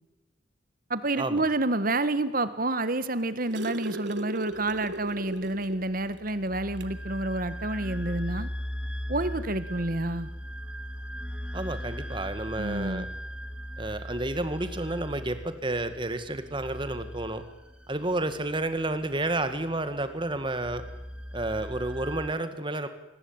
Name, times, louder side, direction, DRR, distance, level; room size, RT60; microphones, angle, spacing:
voice 1, 0.9-8.5 9.1-10.3 12.6-13.1, right 2 dB, 45° right, 13 dB, 1.6 m, -29 dB
sound 1, 3.0-5.9 6.3-6.4 6.8-7.0 8.1-8.2, right 2 dB, 60° right, 1.5 m, -37 dB
sound 2, 4.5-22.3, equal, 5° right, 2.2 m, -39 dB
voice 2, 11.5-13.1 13.8-17.4 17.9-20.8 21.3-22.9, right 2 dB, 25° right, 10 dB, 2.0 m, -31 dB
27.0 x 20.0 x 8.9 m, 0.99 s
head